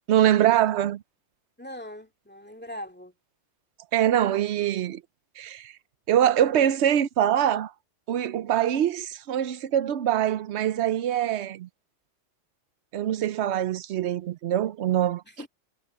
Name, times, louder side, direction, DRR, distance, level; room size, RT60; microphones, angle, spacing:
voice 1, 0.1-1.0 3.9-5.0 5.4-5.7 6.1-7.7 8.1-11.7 12.9-15.2, right 11 dB, 70° right, 0.9 m, -24 dB
voice 2, 1.6-3.1 15.2-15.5, left 1 dB, 10° left, 2.4 m, -40 dB
omnidirectional pair, 1.2 m